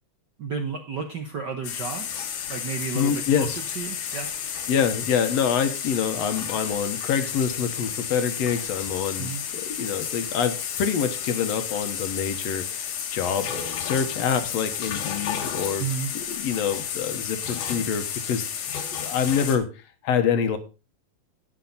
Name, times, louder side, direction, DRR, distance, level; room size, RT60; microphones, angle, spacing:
voice 1, 0.4-4.3 9.2-9.4 15.8-16.1, right 6 dB, 60° right, 5 dB, 1.1 m, -32 dB
sound 1, 1.6-19.6, left 8 dB, 90° left, 3.0 m, -32 dB
voice 2, 2.9-3.6 4.7-13.5 13.8-15.9 16.1-18.4 18.9-19.7 20.0-20.6, left 7 dB, 65° left, 9 dB, 2.1 m, -26 dB
11.5 x 9.1 x 4.0 m, 0.31 s
omnidirectional pair, 3.3 m